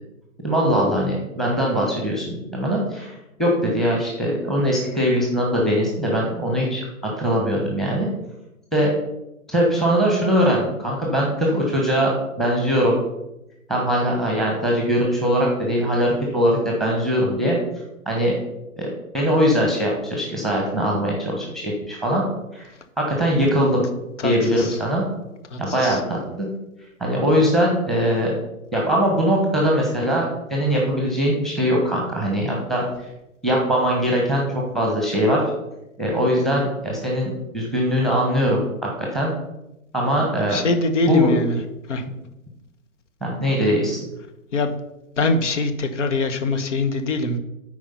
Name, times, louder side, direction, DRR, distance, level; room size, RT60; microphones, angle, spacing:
voice 1, 0.4-6.9 7.2-8.1 8.7-8.9 9.5-12.1 12.4-13.0 13.7-17.6 18.1-18.3 18.8-18.9 19.1-22.2 22.5-22.7 23.0-23.8 24.2-25.0 25.6-26.5 27.0-28.3 28.7-32.9 33.4-34.4 34.7-35.4 36.0-39.3 39.9-40.6 41.1-41.3 43.2-44.0, equal, ahead, -2 dB, 1.2 m, -21 dB
voice 2, 24.2-24.7 25.5-26.0 40.5-41.6 41.9-42.0 44.5-44.7 45.2-47.4, left 2 dB, 60° left, 9 dB, 1.2 m, -23 dB
8.6 x 4.8 x 5.7 m, 0.91 s
figure-of-eight pair, 125°, 41 cm